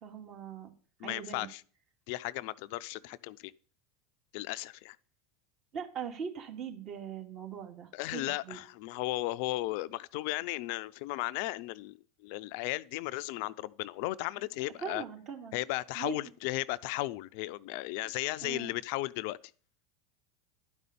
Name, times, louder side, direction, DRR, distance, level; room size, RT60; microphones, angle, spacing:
voice 1, 0.0-0.7 1.0-1.5 5.7-8.6 14.8-15.6 15.9-16.2 18.4-18.8, right 7 dB, 45° right, 2.4 m, -41 dB
voice 2, 1.0-1.6 2.1-3.5 4.3-5.0 7.9-12.0 12.2-15.0 15.5-19.4, left 18 dB, 60° left, 0.5 m, -35 dB
11.0 x 5.4 x 8.4 m
hypercardioid pair, 80°, 0 cm